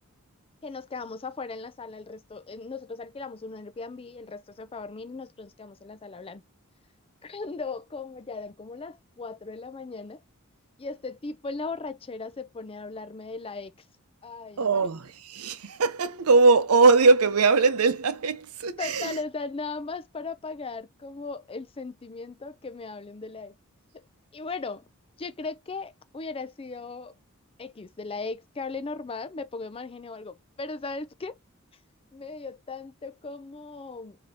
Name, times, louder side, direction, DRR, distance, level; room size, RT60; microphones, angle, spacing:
voice 1, 0.6-6.4 7.2-10.2 10.8-13.7 14.2-14.9 18.8-23.5 23.9-24.0 24.3-24.8 25.2-27.1 27.6-31.4 32.1-34.2, left 3 dB, 25° left, 0.5 m, -37 dB
voice 2, 14.6-19.2, right 4 dB, 85° right, 0.7 m, -21 dB
5.1 x 2.8 x 2.7 m
head